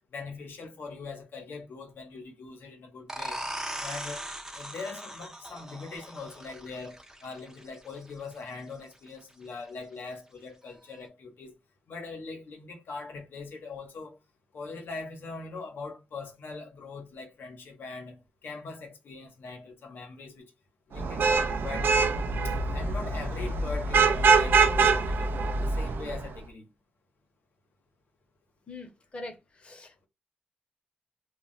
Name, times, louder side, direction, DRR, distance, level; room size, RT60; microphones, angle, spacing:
voice 1, 0.1-3.4 3.8-4.2 4.6-11.5 11.9-14.2 14.5-20.5 20.9-21.9 22.4-26.7, left 4 dB, 85° left, 0.7 m, -41 dB
sound 1, 3.1-8.5, right 1 dB, 15° right, 0.5 m, -39 dB
Vehicle horn car horn honking / Traffic noise roadway noise, 21.0-26.2, right 4 dB, 85° right, 0.4 m, -24 dB
voice 2, 28.7-30.1, left 2 dB, 35° left, 0.7 m, -43 dB
2.2 x 2.1 x 3.8 m
wide cardioid pair, 145°, 3 cm